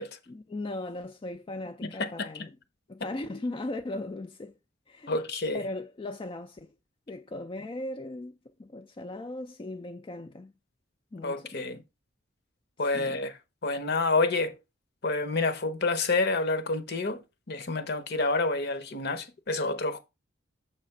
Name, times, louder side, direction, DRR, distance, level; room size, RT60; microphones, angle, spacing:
voice 1, 0.3-2.5 2.9-4.6 4.9-5.2 5.5-6.7 7.1-10.5 11.1-11.6 12.9-13.2, left 2 dB, 25° left, 0.4 m, -38 dB
voice 2, 1.8-2.3 5.1-5.6 11.2-11.8 12.8-13.3 13.6-14.5 15.0-17.2 17.5-20.0, left 3 dB, 55° left, 0.9 m, -28 dB
7.2 x 3.2 x 5.8 m
head